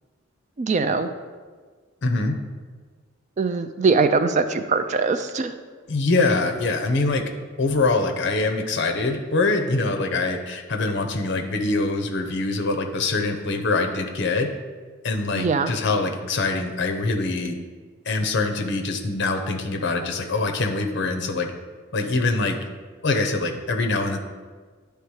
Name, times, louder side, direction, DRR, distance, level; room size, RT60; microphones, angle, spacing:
voice 1, 0.6-1.1 3.4-5.5 15.3-15.7, right 4 dB, 35° right, 9 dB, 0.3 m, -22 dB
voice 2, 2.0-2.4 5.9-7.2 7.6-14.5 15.0-17.6 18.1-21.5 21.9-22.6 23.0-24.2, left 3 dB, 60° left, 5 dB, 0.7 m, -24 dB
10.0 x 3.4 x 4.7 m, 1.5 s
head